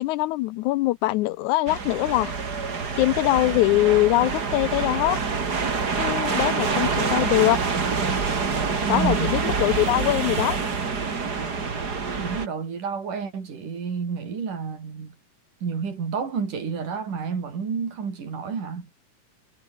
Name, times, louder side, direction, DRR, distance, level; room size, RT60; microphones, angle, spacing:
voice 1, 0.0-2.3 3.0-5.2 6.0-7.6 8.9-10.6, left 18 dB, 80° left, 1.9 m, -22 dB
sound 1, 1.7-12.5, right 5 dB, 30° right, 2.8 m, -26 dB
voice 2, 8.8-9.4 12.2-15.2 15.6-18.9, right 6 dB, 80° right, 5.7 m, -30 dB
omnidirectional pair, 3.6 m